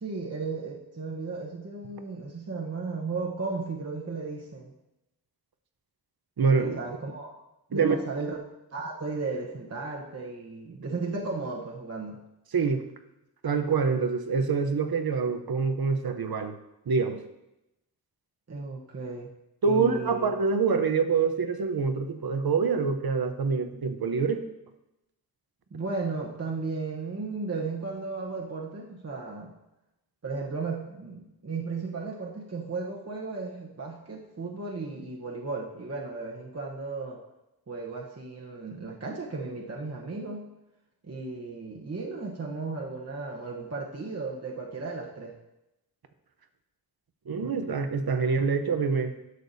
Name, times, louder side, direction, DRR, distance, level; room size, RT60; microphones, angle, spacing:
voice 1, 0.0-4.7 6.6-7.3 7.7-8.4 8.7-12.2 18.5-19.3 19.6-20.3 25.7-29.5 30.2-37.2 37.7-40.5 41.0-45.3, right 3 dB, 40° right, -2 dB, 1.0 m, -35 dB
voice 2, 6.4-6.8 7.7-8.0 12.5-12.8 13.4-16.6 16.9-17.2 19.6-24.4 47.3-49.1, right 5 dB, 70° right, 8 dB, 0.8 m, -26 dB
11.0 x 6.6 x 2.7 m, 0.92 s
wide cardioid pair, 85°, 39 cm